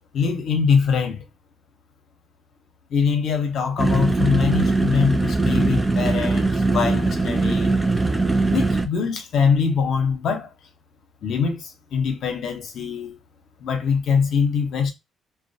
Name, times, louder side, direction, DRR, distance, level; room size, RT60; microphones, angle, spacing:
voice 1, 0.1-1.2 2.9-7.8 8.5-10.5 11.2-13.2 13.6-14.9, left 6 dB, 70° left, 0.7 m, -23 dB
sound 1, 3.8-8.9, right 3 dB, 15° right, 0.4 m, -21 dB
2.4 x 2.2 x 2.6 m
cardioid pair, 90°, 0 cm